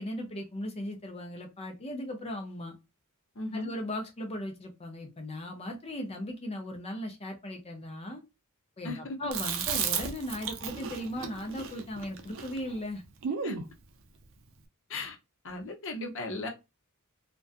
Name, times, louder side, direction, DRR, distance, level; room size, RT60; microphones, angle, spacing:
voice 1, 0.0-2.8 3.5-8.2 8.8-13.0, left 1 dB, 25° left, 0.5 m, -37 dB
voice 2, 3.4-3.7 8.8-9.0 13.4-13.6 14.9-15.2 15.4-16.5, left 2 dB, 60° left, 0.7 m, -36 dB
Chewing mastication, 9.3-13.7, right 6 dB, 60° right, 0.5 m, -34 dB
2.4 x 2.2 x 2.4 m
head